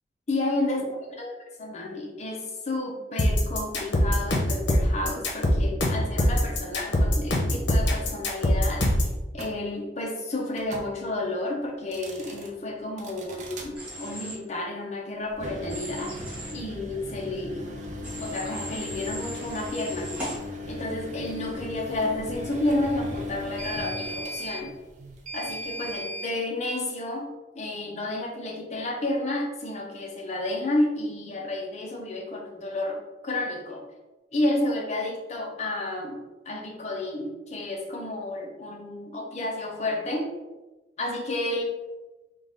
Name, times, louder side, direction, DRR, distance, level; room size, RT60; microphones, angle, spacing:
voice 1, 0.3-0.8 1.2-8.9 9.3-16.2 16.5-17.7 18.2-20.1 20.7-24.7 25.3-27.3 27.5-33.8 34.3-36.2 36.5-40.3 41.0-41.6, left 2 dB, 40° left, 1 dB, 0.6 m, -31 dB
sound 1, 3.2-9.2, left 1 dB, 75° left, 0.8 m, -23 dB
sound 2, 9.3-9.5 10.5-10.9 11.8-12.5 13.0-13.7 15.3-26.3, left 1 dB, 40° right, 0.5 m, -37 dB
Human voice / Train, 13.8-14.3 15.7-16.5 18.0-20.4, right 1 dB, 5° right, 1.0 m, -38 dB
3.9 x 2.4 x 3.6 m, 1.1 s
head